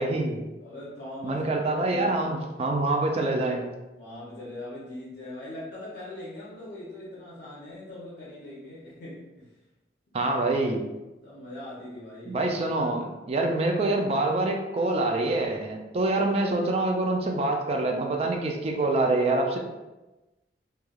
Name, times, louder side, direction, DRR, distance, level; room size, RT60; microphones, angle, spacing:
voice 1, 0.0-0.4 1.2-3.6 10.1-10.8 12.3-19.6, right 2 dB, 35° right, 2 dB, 0.3 m, -26 dB
voice 2, 0.6-1.5 1.8-2.2 3.9-9.5 11.2-12.5 16.5-16.6, left 1 dB, 70° left, -9 dB, 0.7 m, -41 dB
3.1 x 2.2 x 2.3 m, 1.1 s
head